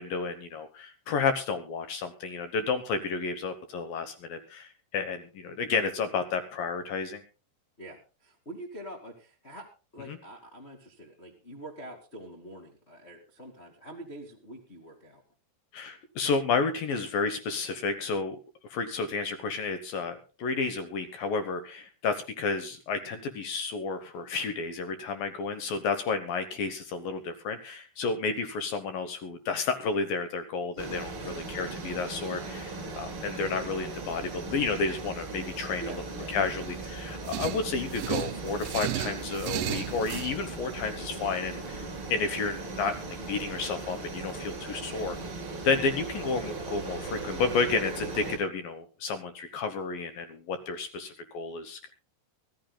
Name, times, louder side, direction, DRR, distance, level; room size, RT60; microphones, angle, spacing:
voice 1, 0.0-7.2 15.7-18.4 18.7-35.9 36.3-43.0 43.3-45.2 45.6-51.9, left 4 dB, 65° left, 9 dB, 2.5 m, -31 dB
voice 2, 7.8-15.2 35.8-36.7, right 1 dB, 25° left, 0 dB, 1.4 m, -45 dB
sound 1, 30.8-48.4, right 3 dB, 30° right, 4.0 m, -38 dB
sound 2, 37.3-40.4, right 15 dB, 80° right, 3.0 m, -34 dB
24.0 x 14.5 x 2.3 m, 0.33 s
omnidirectional pair, 5.0 m